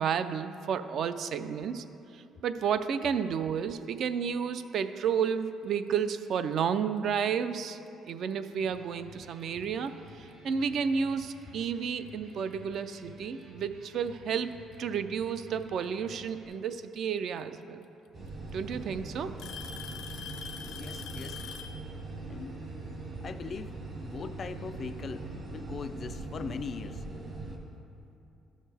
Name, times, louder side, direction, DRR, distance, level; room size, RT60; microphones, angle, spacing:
voice 1, 0.0-1.8 2.1-7.8 8.1-9.9 10.2-14.5 14.8-17.8 18.5-19.4, right 7 dB, 60° right, 11 dB, 0.4 m, -31 dB
Alarm / Tick-tock, 7.9-8.1 9.0-9.1 9.9-10.0 11.6-11.7 13.0-13.1 14.3-14.7 16.5-16.6 17.8-17.9 18.3-18.7 19.4-21.8, left 8 dB, 80° left, 0.6 m, -43 dB
Electric guitar, 8.5-16.5, equal, 75° right, 1.5 m, -52 dB
sound 1, 18.1-27.6, right 3 dB, 45° right, 1.4 m, -41 dB
voice 2, 20.7-21.4 22.3-22.6 23.2-27.0, left 5 dB, 40° left, 11 dB, 0.3 m, -40 dB
13.0 x 6.4 x 3.4 m, 2.7 s
cardioid pair, 125°, 0 cm